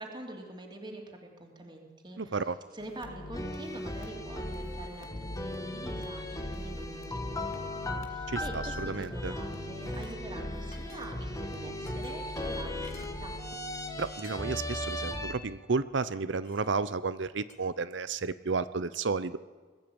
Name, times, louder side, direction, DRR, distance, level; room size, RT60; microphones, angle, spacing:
voice 1, 0.0-2.4 2.7-13.3, right 1 dB, 25° right, 0 dB, 2.9 m, -45 dB
voice 2, 2.2-2.6 8.3-9.3 14.0-19.4, right 4 dB, 65° right, 14 dB, 0.7 m, -32 dB
sound 1, 2.8-14.1, left 2 dB, 85° left, 2.2 m, -45 dB
sound 2, 3.3-15.3, left 1 dB, 15° left, 1.4 m, -37 dB
sound 3, 8.6-9.3 9.6-10.2 10.7-11.4 11.8-13.2 13.8-13.9 14.1-14.6 15.0-15.2 16.4-16.9 17.5-17.6, left 4 dB, 40° left, 3.1 m, -54 dB
21.5 x 13.5 x 8.8 m, 1.5 s
head